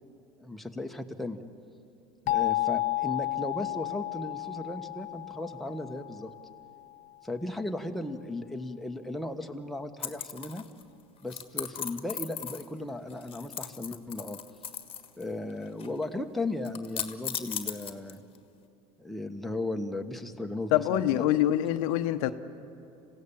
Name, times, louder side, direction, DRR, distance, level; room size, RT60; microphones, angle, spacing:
voice 1, 0.4-1.4 2.2-6.3 7.2-10.6 11.2-14.4 15.2-18.2 19.0-21.3, left 2 dB, ahead, 4 dB, 1.3 m, -36 dB
sound 1, 2.3-7.0, left 16 dB, 45° left, 0.4 m, -32 dB
sound 2, 10.0-10.8 11.3-12.8 13.1-15.2 15.5-16.0 16.6-18.4, left 8 dB, 30° left, 1.5 m, -37 dB
voice 2, 20.7-22.3, left 13 dB, 75° left, 10 dB, 0.8 m, -25 dB
27.0 x 16.5 x 7.2 m, 2.7 s
hypercardioid pair, 85°, 18 cm